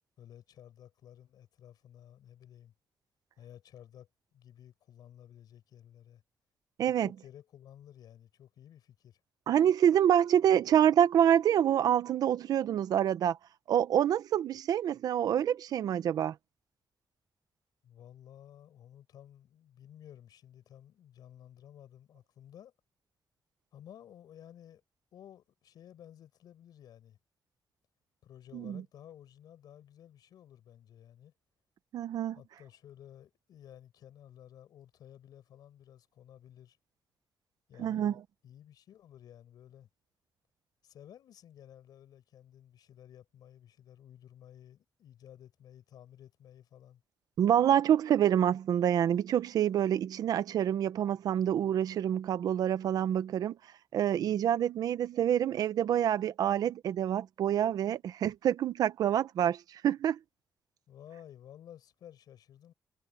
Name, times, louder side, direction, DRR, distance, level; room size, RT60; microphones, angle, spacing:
voice 1, 0.2-2.7 3.4-6.2 7.0-9.2 17.8-22.7 23.7-24.8 25.1-27.2 28.2-31.3 32.3-36.8 37.7-39.9 40.8-47.0 60.9-62.7, left 10 dB, 90° left, 5.4 m, -54 dB
voice 2, 6.8-7.1 9.5-13.4 13.7-16.3 28.5-28.8 31.9-32.4 37.8-38.1 47.4-53.6 53.9-60.2, right 10 dB, 70° right, 0.9 m, -27 dB
wide cardioid pair, 175°, 7 cm